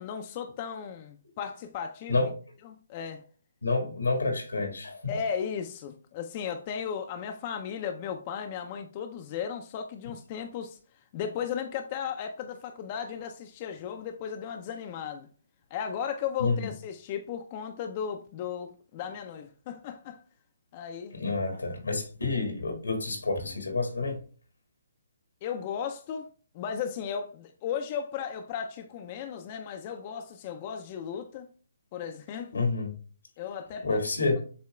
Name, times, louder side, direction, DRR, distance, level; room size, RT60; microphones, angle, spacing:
voice 1, 0.0-2.3 2.6-3.2 5.1-10.8 11.1-15.3 15.7-20.2 20.7-21.1 25.4-26.3 26.5-31.5 31.9-32.6 33.4-34.0, left 7 dB, 35° left, 0.4 m, -35 dB
voice 2, 3.6-5.1 16.4-16.7 21.1-24.2 32.5-32.9 33.8-34.4, left 3 dB, 90° left, 1.6 m, -28 dB
7.5 x 2.8 x 2.3 m
hypercardioid pair, 145°, 0 cm